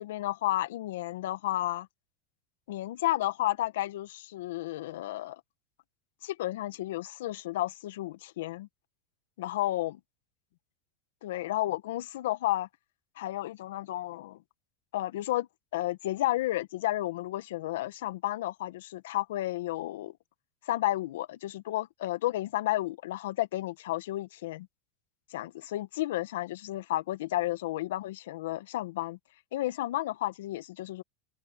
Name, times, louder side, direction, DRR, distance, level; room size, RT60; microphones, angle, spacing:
voice 1, 0.0-1.9 2.7-5.4 6.2-8.7 9.4-10.0 11.2-12.7 13.2-14.4 14.9-20.2 20.6-24.7 25.3-29.2 29.5-31.0, left 15 dB, 75° left, 1.8 m, -32 dB
hypercardioid pair, 110°, 0 cm